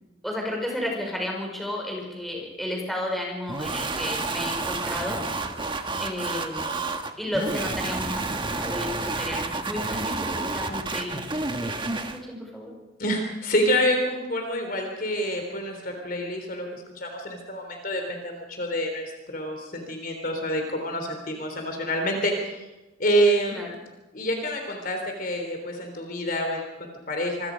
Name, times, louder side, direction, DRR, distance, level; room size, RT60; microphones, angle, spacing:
voice 1, 0.2-5.2 6.0-6.8 7.2-11.2 11.6-12.8 23.5-23.7, left 1 dB, ahead, -1 dB, 5.6 m, -32 dB
sound 1, 3.5-12.2, right 3 dB, 25° right, 1.5 m, -30 dB
voice 2, 13.0-22.7 23.0-23.7 24.1-27.5, equal, 45° left, 4 dB, 3.5 m, -27 dB
26.5 x 23.0 x 5.2 m, 1.1 s
head